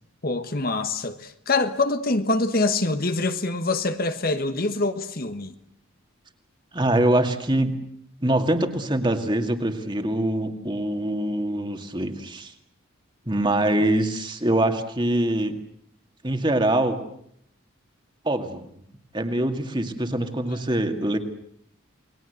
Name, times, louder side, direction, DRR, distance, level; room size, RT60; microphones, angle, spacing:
voice 1, 0.2-5.5 20.7-20.8, left 3 dB, 45° left, 1.4 m, -25 dB
voice 2, 6.7-7.7 8.2-12.5 13.3-15.5 16.2-17.0 18.2-18.6 19.1-21.2, right 1 dB, 20° right, 2.2 m, -24 dB
29.5 x 20.5 x 8.2 m
head